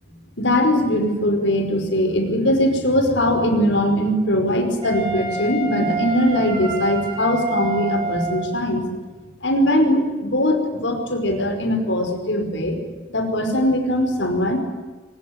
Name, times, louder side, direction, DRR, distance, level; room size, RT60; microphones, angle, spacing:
voice 1, 0.4-8.8 9.4-12.8 13.1-14.6, left 1 dB, 90° left, 5 dB, 5.1 m, -20 dB
Wind instrument woodwind instrument, 4.8-8.6, right 3 dB, 30° right, 6.0 m, -28 dB
23.0 x 21.0 x 9.5 m, 1.3 s
head